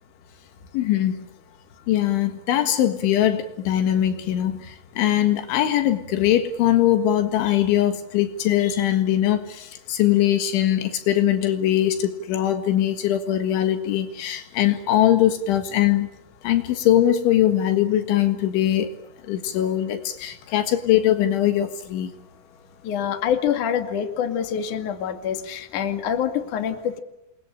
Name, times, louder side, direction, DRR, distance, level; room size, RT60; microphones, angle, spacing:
voice 1, 0.7-1.2 1.9-16.1 16.4-18.9 19.3-22.1, left 12 dB, 75° left, 4.0 m, -21 dB
voice 2, 22.8-27.0, left 8 dB, 50° left, 3.1 m, -26 dB
29.0 x 23.5 x 8.8 m
omnidirectional pair, 5.6 m